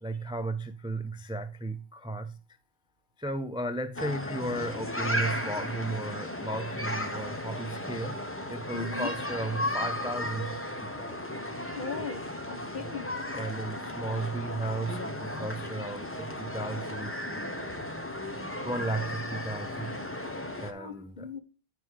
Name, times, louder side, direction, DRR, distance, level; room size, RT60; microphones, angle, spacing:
voice 1, 0.0-2.3 3.2-8.2 8.5-11.2 12.8-12.9 13.3-17.5 18.6-20.0 20.6-21.3, right 2 dB, 5° right, 0.4 m, -35 dB
sound 1, 4.0-20.7, left 1 dB, 15° left, 0.9 m, -35 dB
voice 2, 8.7-9.1 11.7-13.1 20.7-21.4, left 4 dB, 55° left, 1.3 m, -38 dB
9.2 x 5.2 x 4.7 m
omnidirectional pair, 1.1 m